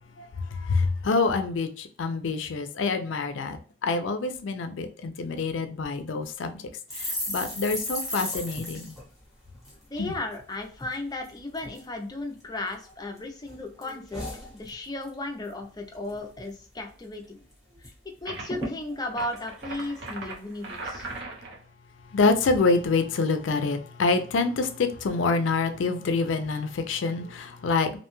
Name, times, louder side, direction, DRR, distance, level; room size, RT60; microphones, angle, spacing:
voice 1, 0.5-6.6 7.0-8.9 10.0-10.1 22.1-28.0, left 3 dB, 80° left, 0.4 m, -26 dB
sound 1, 6.9-10.4 10.7-11.0 11.2-11.9 12.4-13.2 13.5-15.1 15.4-15.7 15.9-16.5 16.9-17.0 17.2-17.9 18.2-18.3 18.5-20.4 20.9-21.2, left 1 dB, ahead, 0.9 m, -37 dB
voice 2, 9.9-14.3 14.5-17.4 17.8-17.9 18.2-21.1, left 2 dB, 20° left, 0.4 m, -35 dB
sound 2, 18.3-18.7 19.1-21.6, right 2 dB, 65° right, 0.7 m, -38 dB
2.6 x 2.2 x 2.9 m
head